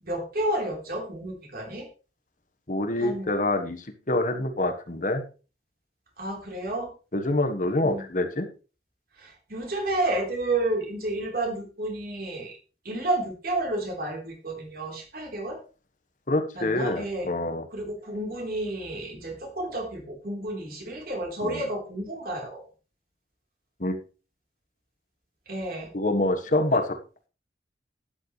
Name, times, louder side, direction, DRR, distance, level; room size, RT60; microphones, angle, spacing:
voice 1, 0.0-1.9 3.0-3.3 6.2-6.9 7.8-8.0 9.2-12.6 12.8-15.6 16.6-17.3 17.7-22.6 25.5-25.9 26.7-26.8, right 1 dB, 55° right, 1 dB, 3.9 m, -31 dB
voice 2, 2.7-5.2 7.1-8.5 16.3-17.6 21.4-21.6 23.8-24.0 25.9-26.8, left 2 dB, 45° left, 7 dB, 1.4 m, -26 dB
12.5 x 9.8 x 3.3 m, 0.34 s
head